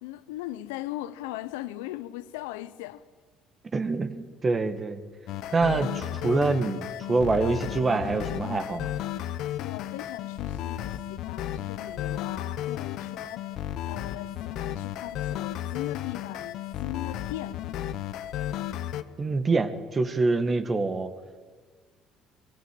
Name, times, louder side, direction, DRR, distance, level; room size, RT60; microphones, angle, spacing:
voice 1, 0.0-3.0 9.6-13.4 13.9-17.6, left 15 dB, 85° left, 0.7 m, -39 dB
voice 2, 3.7-5.0 5.5-8.9 19.2-21.1, right 3 dB, 30° right, 2.0 m, -26 dB
sound 1, 5.3-19.0, left 11 dB, 70° left, 1.0 m, -33 dB
22.5 x 16.5 x 8.7 m
supercardioid pair, 70°, 0 cm